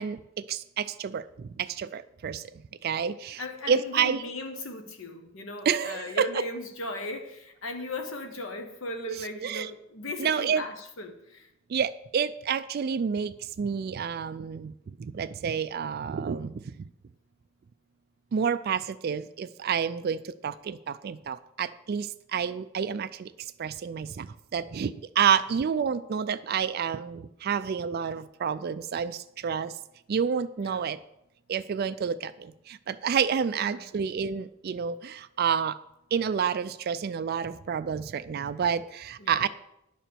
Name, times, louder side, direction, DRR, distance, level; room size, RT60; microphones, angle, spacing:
voice 1, 0.0-2.4 2.8-4.3 5.7-6.4 9.1-9.7 10.2-10.6 11.7-16.9 18.3-23.3 23.6-29.7 30.1-31.0 31.5-35.8 36.1-39.5, right 7 dB, 45° right, 11 dB, 0.3 m, -29 dB
voice 2, 3.4-11.5 25.2-25.3 30.6-30.9 33.5-33.8 39.2-39.5, left 2 dB, 65° left, 6 dB, 1.2 m, -38 dB
10.0 x 4.4 x 6.8 m, 0.83 s
head